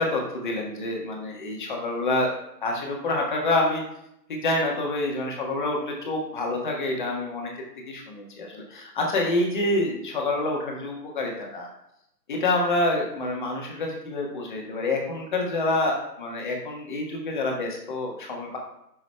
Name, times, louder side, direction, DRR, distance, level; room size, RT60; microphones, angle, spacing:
voice 1, 0.0-2.3 2.6-3.8 4.3-7.5 7.8-11.7 12.3-18.6, left 2 dB, 30° left, 0 dB, 1.3 m, -27 dB
9.1 x 6.2 x 2.2 m, 0.80 s
figure-of-eight pair, 150°, 50 cm